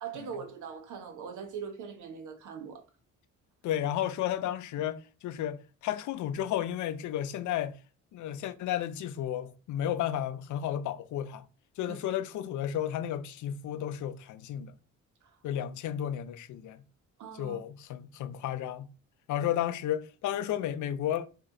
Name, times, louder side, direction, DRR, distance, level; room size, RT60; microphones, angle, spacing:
voice 1, 0.0-2.8 11.8-12.0 15.2-15.4 17.2-17.6, right 6 dB, 80° right, 1.2 m, -41 dB
voice 2, 3.6-7.8 8.1-11.4 11.8-14.7 15.4-16.8 17.4-18.9 19.3-21.3, left 11 dB, 75° left, 0.6 m, -33 dB
4.2 x 2.9 x 3.8 m
cardioid pair, 90°, 30 cm